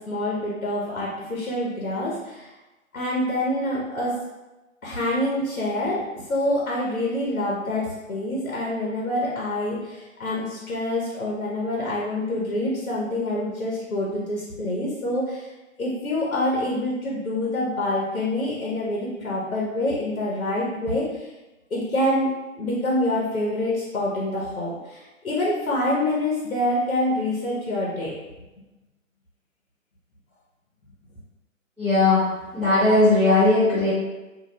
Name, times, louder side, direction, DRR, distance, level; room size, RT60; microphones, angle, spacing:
voice 1, 0.0-2.5 2.9-4.1 4.8-6.0 6.3-15.5 15.8-21.3 21.7-28.1, left 1 dB, 80° left, -4 dB, 0.7 m, -26 dB
voice 2, 31.8-32.2 32.5-33.9, left 2 dB, ahead, -17 dB, 0.8 m, -18 dB
2.3 x 2.0 x 2.8 m, 1.1 s
figure-of-eight pair, 135°, 41 cm